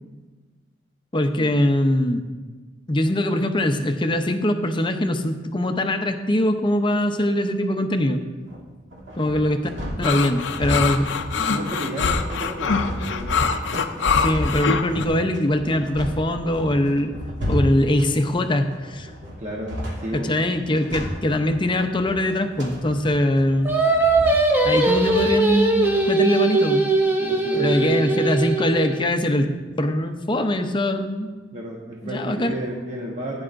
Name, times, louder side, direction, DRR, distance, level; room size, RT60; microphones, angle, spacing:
voice 1, 1.1-2.2 2.9-8.2 9.2-9.7 10.0-11.1 14.2-17.2 17.5-19.1 20.1-23.8 24.6-26.8 27.6-29.5 29.7-31.3 32.0-32.5, left 1 dB, 25° left, 7 dB, 0.6 m, -22 dB
sound 1, 8.5-26.0, equal, 65° right, 2.8 m, -33 dB
voice 2, 9.7-10.3 10.7-11.0 11.5-13.5 19.4-20.3 27.2-28.1 31.5-33.4, equal, 35° right, -3 dB, 1.1 m, -32 dB
sound 2, 10.0-15.0, left 5 dB, 65° left, 0.6 m, -24 dB
Singing, 23.7-29.0, right 3 dB, 10° right, 1.0 m, -20 dB
15.5 x 9.6 x 2.6 m, 1.4 s
head